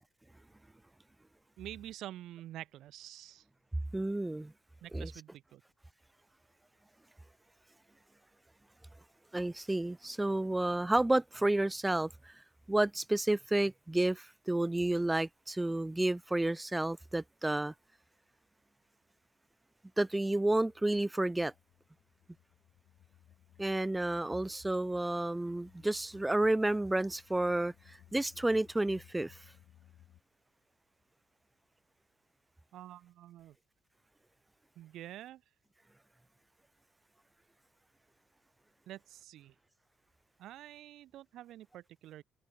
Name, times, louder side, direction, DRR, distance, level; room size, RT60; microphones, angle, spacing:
voice 1, 1.6-3.4 4.8-5.6 32.7-33.6 34.7-35.4 38.9-39.5 40.4-42.2, right 13 dB, 75° right, 1.4 m, -48 dB
voice 2, 3.9-4.5 4.9-5.1 9.3-12.3 12.7-17.7 20.0-21.5 23.6-29.4, right 1 dB, 10° right, 0.4 m, -31 dB
sound 1, 20.1-30.2, left 12 dB, 75° left, 2.9 m, -62 dB
cardioid pair, 100°, 0 cm